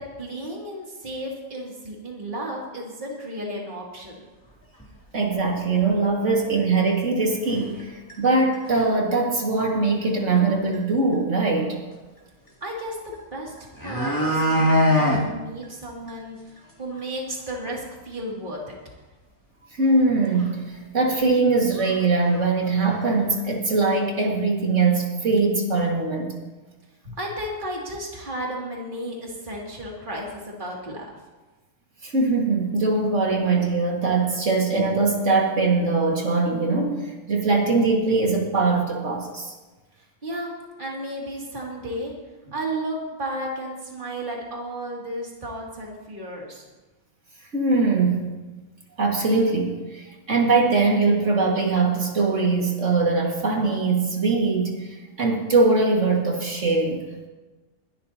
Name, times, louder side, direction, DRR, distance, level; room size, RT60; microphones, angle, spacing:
voice 1, 0.0-4.3 12.6-13.5 13.8-18.8 27.2-31.1 40.0-42.1 42.5-46.7, right 1 dB, 40° right, -3 dB, 2.7 m, -33 dB
sound 1, 4.8-4.9 5.4-5.5 5.8-5.9 6.9-7.0 7.5-7.8 8.1-8.2 8.5-9.0 10.4-10.5 10.7-10.8 13.1-13.2 13.6-15.2 15.6-15.7 16.1-16.2 16.6-16.7 17.0-17.1 19.9-20.0 20.3-20.5 21.2-21.3 21.8-22.0 22.2-23.0 23.4-23.5, equal, 15° left, 2.5 m, -23 dB
voice 2, 5.1-11.8 19.8-26.3 27.1-27.2 32.0-39.5 47.5-48.3 49.0-57.1, right 3 dB, 60° right, -1 dB, 2.3 m, -22 dB
21.0 x 12.5 x 2.8 m, 1.2 s
omnidirectional pair, 1.4 m